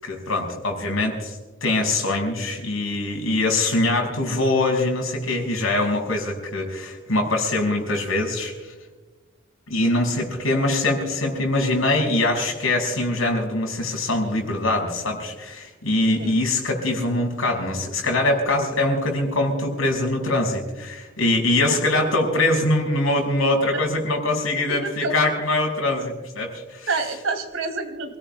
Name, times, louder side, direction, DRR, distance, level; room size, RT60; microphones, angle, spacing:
voice 1, 0.0-8.5 9.7-26.9, left 2 dB, 85° left, 1 dB, 5.5 m, -23 dB
voice 2, 24.7-25.1 26.9-28.2, right 3 dB, 80° right, 6 dB, 2.4 m, -28 dB
29.0 x 18.0 x 2.2 m, 1.3 s
head